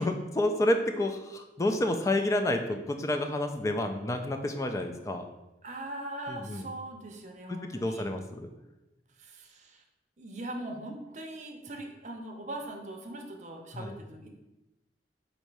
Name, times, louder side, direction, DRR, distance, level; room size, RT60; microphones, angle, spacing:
voice 1, 0.0-5.2 6.3-6.6 7.5-8.5 13.7-13.9, left 1 dB, 15° left, 5 dB, 0.3 m, -29 dB
voice 2, 5.6-8.1 9.2-9.8 10.2-14.3, right 1 dB, 40° right, 2 dB, 0.6 m, -41 dB
4.0 x 2.7 x 4.6 m, 0.99 s
head